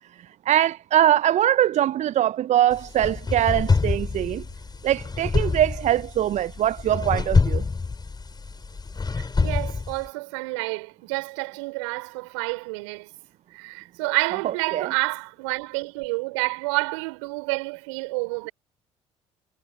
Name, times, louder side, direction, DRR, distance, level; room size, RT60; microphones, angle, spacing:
voice 1, 0.1-4.4 4.8-7.7 14.4-14.9, right 12 dB, 45° right, 0.6 m, -22 dB
sound 1, 2.7-10.1, left 4 dB, 25° left, 6.2 m, -26 dB
voice 2, 9.1-13.1 13.5-18.5, right 27 dB, 75° right, 5.0 m, -29 dB
figure-of-eight pair, 55°, 16 cm